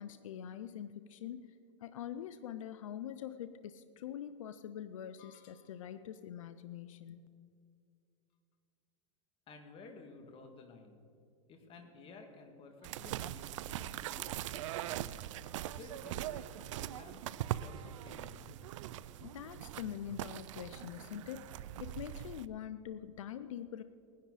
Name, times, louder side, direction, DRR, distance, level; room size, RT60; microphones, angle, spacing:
voice 1, 0.0-7.3 19.2-23.8, left 10 dB, 80° left, 12 dB, 0.6 m, -44 dB
sound 1, 5.2-6.2, left 11 dB, 55° left, 0.9 m, -65 dB
voice 2, 9.5-11.0 11.5-15.0 15.6-17.2 17.6-18.4, left 3 dB, 35° left, 4 dB, 2.2 m, -54 dB
sound 2, 12.8-22.5, right 13 dB, 70° right, 0.5 m, -41 dB
sound 3, 14.5-20.1 20.4-22.3, right 6 dB, 50° right, 3.2 m, -68 dB
19.0 x 10.5 x 4.1 m, 2.4 s
hypercardioid pair, 110°, 16 cm